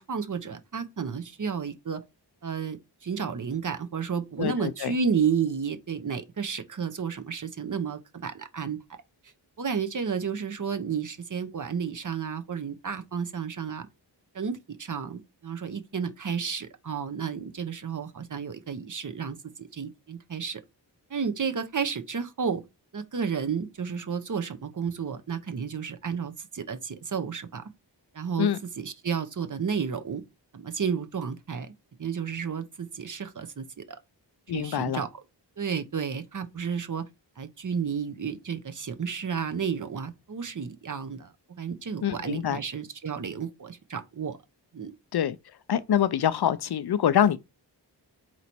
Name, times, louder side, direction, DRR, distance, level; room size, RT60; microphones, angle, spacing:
voice 1, 0.0-2.0 2.4-8.8 9.6-13.9 14.3-20.6 21.1-22.6 22.9-27.6 28.1-30.2 30.5-31.7 32.0-33.9 34.5-35.1 35.6-37.0 37.4-44.4 44.7-44.9, right 6 dB, 45° right, 0.7 m, -32 dB
voice 2, 4.4-4.9 28.4-28.6 34.5-35.0 42.0-42.6 45.1-45.4 45.7-47.4, left 9 dB, 60° left, 0.5 m, -25 dB
4.0 x 3.0 x 4.3 m
wide cardioid pair, 60°, 43 cm